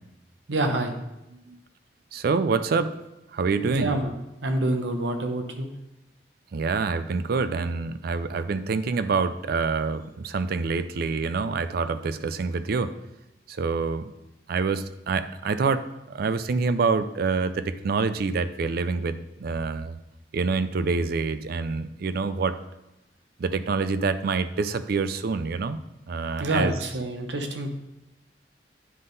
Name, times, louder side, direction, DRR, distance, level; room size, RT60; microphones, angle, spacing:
voice 1, 0.5-1.0 3.7-4.1 4.4-5.7 26.4-27.7, right 1 dB, 80° right, 5 dB, 0.9 m, -27 dB
voice 2, 2.1-3.0 3.3-3.9 6.5-12.9 13.5-14.1 14.5-20.0 20.3-22.6 23.4-25.8 26.1-26.8, right 4 dB, 60° right, 12 dB, 0.4 m, -26 dB
9.6 x 3.7 x 3.9 m, 0.92 s
head